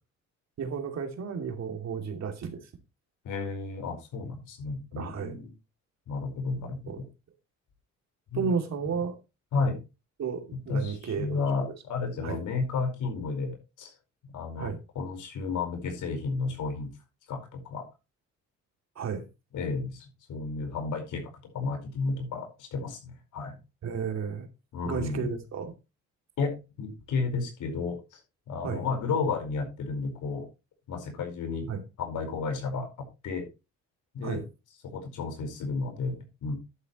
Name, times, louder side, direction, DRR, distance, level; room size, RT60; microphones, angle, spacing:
voice 1, 0.6-2.6 5.0-5.3 6.9-7.0 8.3-9.1 10.2-11.4 12.2-12.4 14.6-14.8 19.0-19.2 23.8-24.5 24.8-25.7 28.6-28.8 31.7-31.8 34.2-34.4, right 6 dB, 60° right, 2.8 m, -32 dB
voice 2, 3.2-5.5 6.1-7.0 8.3-8.5 9.5-9.8 10.7-13.9 14.3-16.9 17.3-17.9 19.5-23.6 24.7-25.3 26.4-28.2 28.5-30.4 30.9-31.7 32.0-33.5 34.1-34.4 34.8-36.5, left 4 dB, 80° left, 5.0 m, -32 dB
11.0 x 9.8 x 3.1 m
cardioid pair, 90°, 30 cm